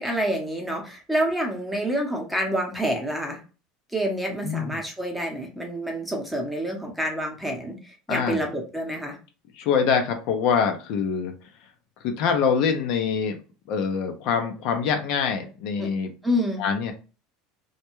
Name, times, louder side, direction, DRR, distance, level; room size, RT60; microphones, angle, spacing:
voice 1, 0.0-3.4 3.9-9.2 15.8-15.9 16.2-16.6, equal, 5° right, 1 dB, 0.8 m, -28 dB
voice 2, 4.4-4.8 8.1-8.4 9.5-11.3 12.0-13.4 13.7-16.1 16.6-16.9, left 6 dB, 65° left, 5 dB, 0.5 m, -24 dB
2.2 x 2.1 x 3.0 m, 0.34 s
supercardioid pair, 110°, 0 cm